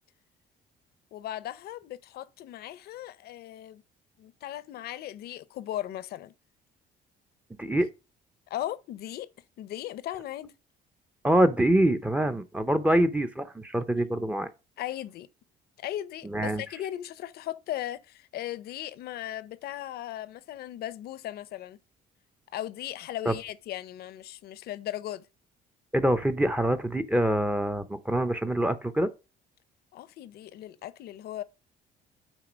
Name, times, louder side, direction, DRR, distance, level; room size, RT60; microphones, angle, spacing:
voice 1, 1.1-3.8 4.2-6.3 8.5-9.3 9.6-10.5 12.9-13.0 14.8-15.3 15.8-21.8 22.5-25.3 29.9-31.4, left 12 dB, 70° left, 0.7 m, -37 dB
voice 2, 11.2-14.5 16.2-16.6 23.3-23.4 25.9-29.1, right 1 dB, 10° right, 0.7 m, -25 dB
9.0 x 3.7 x 5.0 m
cardioid pair, 110°, 17 cm